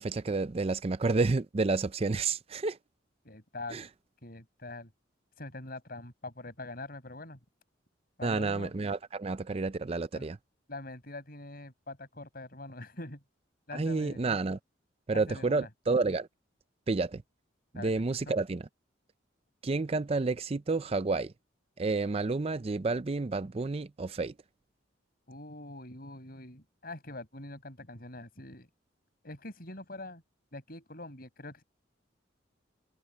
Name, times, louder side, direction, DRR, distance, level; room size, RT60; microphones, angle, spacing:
voice 1, 0.0-2.8 3.7-3.9 8.2-10.4 13.7-14.6 15.1-16.3 16.9-17.2 17.7-18.6 19.6-21.3 21.8-24.3, right 3 dB, 30° right, 0.4 m, -30 dB
voice 2, 3.2-3.9 4.2-4.9 5.4-7.4 8.2-8.7 10.1-10.3 10.7-13.2 13.7-14.2 15.1-15.7 17.7-17.9 18.3-18.4 25.3-28.7 29.2-30.2 30.5-31.6, left 2 dB, 50° left, 6.0 m, -44 dB
head